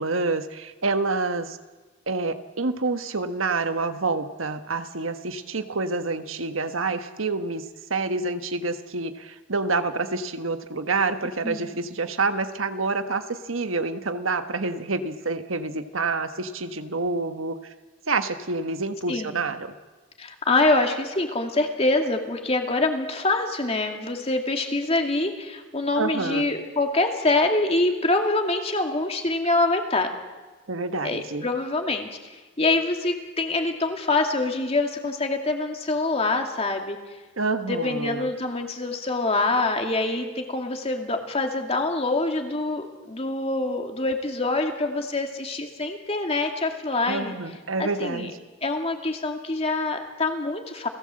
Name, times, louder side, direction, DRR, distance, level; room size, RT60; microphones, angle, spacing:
voice 1, 0.0-1.6 2.1-7.6 7.9-17.5 18.1-19.7 26.0-26.5 30.7-31.5 37.4-38.3 47.1-48.3, right 3 dB, 85° right, 8 dB, 1.4 m, -27 dB
voice 2, 11.4-11.8 19.1-19.5 20.2-30.1 31.0-37.0 37.6-47.3 47.8-48.3 48.6-50.9, left 2 dB, 30° left, 3 dB, 2.5 m, -25 dB
29.5 x 17.5 x 7.7 m, 1.3 s
head